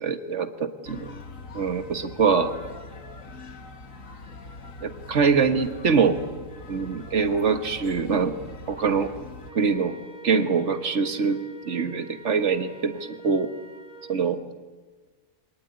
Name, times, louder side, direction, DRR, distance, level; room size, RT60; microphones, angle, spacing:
voice 1, 0.0-1.1 1.5-2.5 4.8-6.2 6.7-8.4 8.7-9.1 9.6-10.0 10.2-11.4 11.7-13.5 14.1-14.4, right 5 dB, 60° right, 10 dB, 1.8 m, -24 dB
sound 1, 0.8-9.5, left 3 dB, 70° left, 2.4 m, -42 dB
Wind instrument woodwind instrument, 9.4-14.3, right 3 dB, 35° right, 2.6 m, -46 dB
25.5 x 18.5 x 9.4 m, 1.3 s
omnidirectional pair, 1.4 m